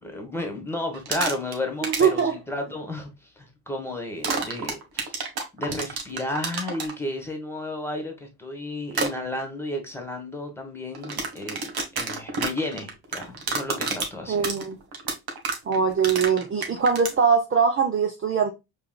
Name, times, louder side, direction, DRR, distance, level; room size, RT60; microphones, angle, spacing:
voice 1, 0.0-5.1 5.6-14.5, left 1 dB, 5° left, 1.7 m, -33 dB
sound 1, 0.9-1.5 1.8-2.2 4.2-6.9 8.9-9.1 10.9-17.1, right 4 dB, 50° right, 1.4 m, -29 dB
voice 2, 1.8-2.3 14.3-14.8 15.7-18.5, right 6 dB, 30° right, 0.7 m, -22 dB
4.6 x 3.4 x 2.3 m
supercardioid pair, 65°, 46 cm